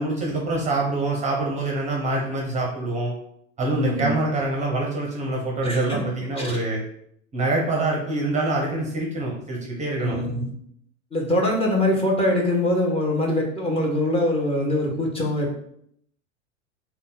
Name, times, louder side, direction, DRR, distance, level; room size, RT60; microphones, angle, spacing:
voice 1, 0.0-3.1 3.6-6.8 7.3-10.2, right 2 dB, 20° right, -1 dB, 0.8 m, -25 dB
voice 2, 3.7-4.1 5.6-6.0 6.4-6.6 10.0-10.5 11.1-15.5, left 1 dB, 15° left, -2 dB, 0.9 m, -23 dB
3.4 x 2.3 x 3.9 m, 0.69 s
figure-of-eight pair, 85°, 39 cm